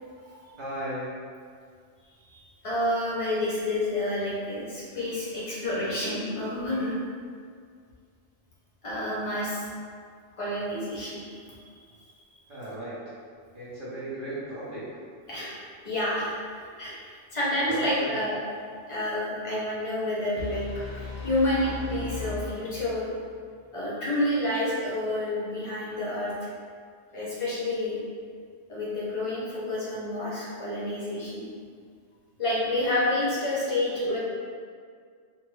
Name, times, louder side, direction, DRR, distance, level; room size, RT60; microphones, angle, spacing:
voice 1, 0.6-1.1 12.5-13.0 13.5-15.0 17.7-18.1, right 1 dB, 50° right, -10 dB, 1.0 m, -36 dB
voice 2, 2.2-7.0 8.8-9.7 10.4-11.7 15.3-15.5 15.8-18.4 18.9-23.1 23.7-26.5 27.1-28.0 28.7-31.5 32.4-34.2, left 1 dB, 35° left, -7 dB, 0.7 m, -29 dB
sound 1, 20.4-23.3, left 4 dB, 60° left, 0.9 m, -37 dB
2.7 x 2.5 x 3.2 m, 2.1 s
omnidirectional pair, 1.2 m